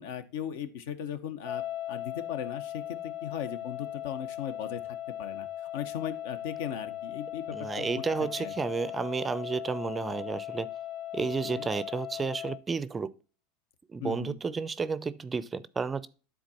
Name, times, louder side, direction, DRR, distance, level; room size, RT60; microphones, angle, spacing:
voice 1, 0.0-1.6 1.9-4.8 5.2-5.5 5.7-7.9 8.4-8.5 11.2-11.7 14.0-14.4, left 9 dB, 75° left, 0.8 m, -37 dB
sound 1, 1.4-12.6, left 12 dB, 45° left, 0.6 m, -38 dB
voice 2, 7.5-10.7 11.1-13.1 13.9-16.1, right 5 dB, 20° right, 0.4 m, -32 dB
9.5 x 3.8 x 4.1 m
supercardioid pair, 105°, 0 cm